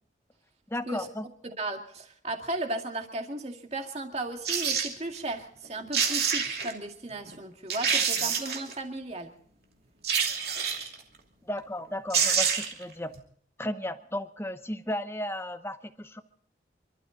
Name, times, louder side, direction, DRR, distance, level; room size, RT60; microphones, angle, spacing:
voice 1, 0.7-1.3 7.9-8.3 11.5-13.1 13.6-16.2, left 1 dB, 15° left, 10 dB, 0.9 m, -34 dB
voice 2, 1.4-9.3, right 2 dB, 35° right, 3 dB, 2.2 m, -35 dB
sound 1, 4.4-4.9 5.6-5.7 5.9-6.7 7.3-7.4 7.7-8.7 10.0-11.0 11.8-11.9 12.1-12.8 13.2-13.3, right 6 dB, 55° right, 2.8 m, -27 dB
28.5 x 12.5 x 3.9 m, 0.63 s
head